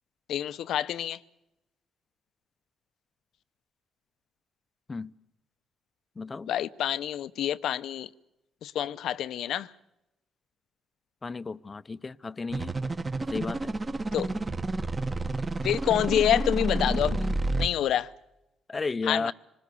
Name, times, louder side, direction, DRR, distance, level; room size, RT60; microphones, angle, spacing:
voice 1, 0.3-1.2 6.5-8.1 8.6-9.7 14.1-14.3 15.6-17.2 17.6-18.1 19.0-19.3, left 11 dB, 75° left, 0.8 m, -27 dB
voice 2, 6.2-6.5 11.2-12.8 13.3-13.7 18.7-19.3, left 4 dB, 30° left, 0.7 m, -33 dB
sound 1, 12.5-17.7, right 2 dB, 25° right, 1.5 m, -30 dB
26.5 x 19.5 x 6.9 m
cardioid pair, 90°, 0 cm